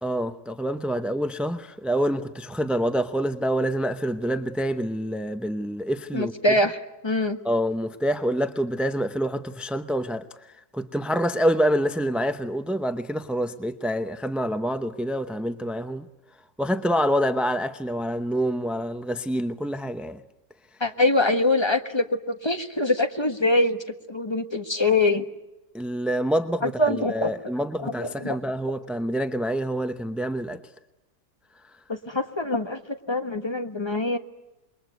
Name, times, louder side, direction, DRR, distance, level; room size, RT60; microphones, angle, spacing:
voice 1, 0.0-6.3 7.4-10.2 10.7-16.0 16.6-20.2 25.7-30.6, equal, ahead, 0.5 m, -26 dB
voice 2, 6.1-7.4 20.8-23.8 24.1-25.3 26.6-27.3 27.8-28.4 31.9-34.2, left 2 dB, 20° left, 1.5 m, -24 dB
27.5 x 22.5 x 9.4 m
omnidirectional pair, 1.6 m